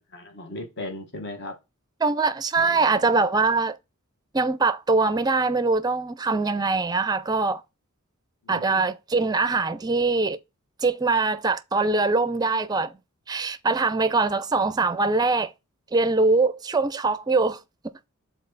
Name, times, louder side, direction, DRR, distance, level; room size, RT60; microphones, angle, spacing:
voice 1, 0.1-1.6 2.6-3.1 8.4-8.8, left 1 dB, 55° left, 1.5 m, -37 dB
voice 2, 2.0-3.8 4.3-7.6 8.5-10.4 10.8-12.9 13.3-15.5 15.9-17.6, right 3 dB, 20° right, 0.5 m, -23 dB
6.4 x 4.1 x 4.0 m
head